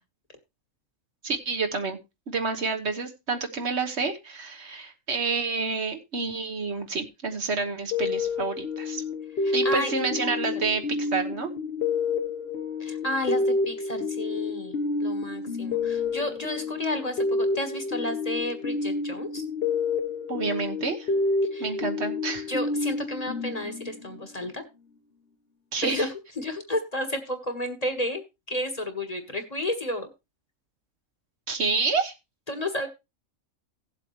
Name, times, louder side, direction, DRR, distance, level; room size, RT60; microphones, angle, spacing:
voice 1, 1.2-2.0 2.3-9.0 9.5-11.5 20.3-21.1 21.6-22.5 25.7-26.1 31.5-32.1, right 4 dB, 60° right, 6 dB, 1.5 m, -29 dB
sound 1, 7.9-24.2, left 3 dB, 50° left, 1.3 m, -29 dB
voice 2, 9.4-9.9 12.8-14.7 15.0-19.4 21.5-21.7 22.5-24.6 25.8-28.2 28.5-30.1 32.5-32.9, left 1 dB, 30° left, 7 dB, 1.5 m, -31 dB
17.0 x 7.6 x 3.1 m, 0.25 s
omnidirectional pair, 1.3 m